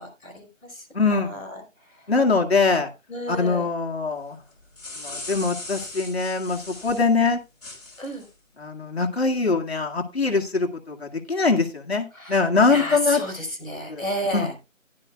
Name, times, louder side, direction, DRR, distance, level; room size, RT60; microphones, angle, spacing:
voice 1, 0.0-1.6 3.1-3.6 8.0-8.2 12.1-14.5, equal, ahead, -18 dB, 2.8 m, -32 dB
voice 2, 0.9-1.4 2.1-2.9 3.3-4.4 5.0-7.4 8.6-13.2 13.9-14.0 14.3-14.5, left 4 dB, 50° left, 1 dB, 2.1 m, -23 dB
sound 1, 4.5-7.1 7.6-8.3, left 2 dB, 30° left, 4.2 m, -38 dB
15.5 x 11.0 x 2.3 m, 0.26 s
figure-of-eight pair, 175°, 40 cm